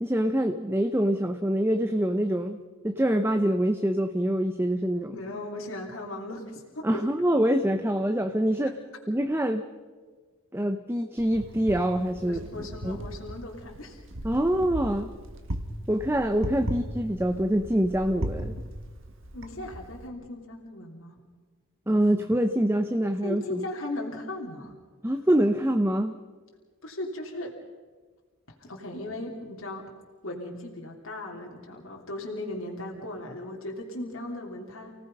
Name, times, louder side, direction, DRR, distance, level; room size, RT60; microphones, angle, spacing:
voice 1, 0.0-2.6 2.8-5.1 6.8-8.8 9.1-9.6 10.5-13.0 14.2-15.1 15.9-18.6 21.9-23.6 25.0-26.2, right 1 dB, 10° right, 6 dB, 0.8 m, -25 dB
voice 2, 5.1-7.0 12.3-14.0 19.3-21.1 23.2-24.7 26.8-27.6 28.6-29.9 30.2-34.9, left 1 dB, 65° left, -1 dB, 3.2 m, -37 dB
Wind, 11.2-20.1, right 1 dB, 60° right, 1.8 m, -37 dB
29.5 x 18.0 x 5.4 m, 1.5 s
head